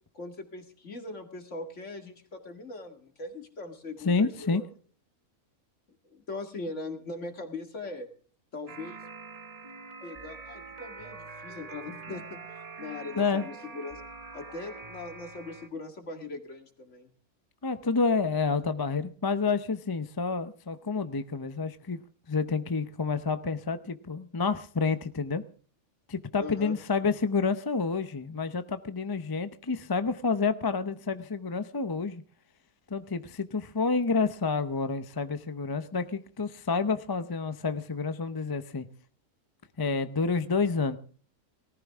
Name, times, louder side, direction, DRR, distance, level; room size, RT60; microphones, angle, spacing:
voice 1, 0.1-4.7 6.0-8.1 8.5-9.0 10.0-12.4 12.8-14.0 14.3-17.1 26.4-26.8, left 3 dB, 55° left, 5 dB, 2.4 m, -40 dB
voice 2, 4.0-4.6 13.2-13.5 17.6-22.0 22.3-25.4 26.1-32.2 32.9-38.9 39.8-41.0, left 4 dB, 25° left, 11 dB, 0.4 m, -29 dB
sound 1, 8.7-15.7, right 4 dB, 35° right, 0.7 m, -44 dB
18.5 x 14.5 x 3.6 m, 0.43 s
omnidirectional pair, 1.5 m